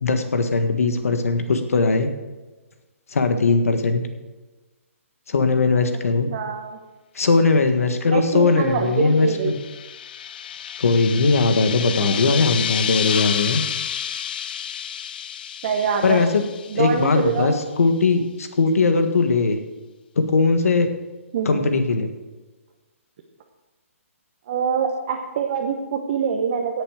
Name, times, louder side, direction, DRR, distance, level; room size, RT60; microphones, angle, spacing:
voice 1, 0.0-2.1 3.1-4.0 5.3-6.3 7.2-9.6 10.8-13.6 16.0-16.4 16.7-19.6 20.2-20.9 21.5-22.1, left 3 dB, 75° left, 7 dB, 1.6 m, -19 dB
voice 2, 6.3-6.8 8.1-9.6 12.0-12.3 15.6-16.2 16.7-17.5 21.3-21.7 24.5-26.8, right 6 dB, 35° right, 2 dB, 1.0 m, -25 dB
sound 1, 9.0-17.3, left 9 dB, 40° left, 0.5 m, -30 dB
17.5 x 7.1 x 5.0 m, 1.2 s
hypercardioid pair, 170°, 8 cm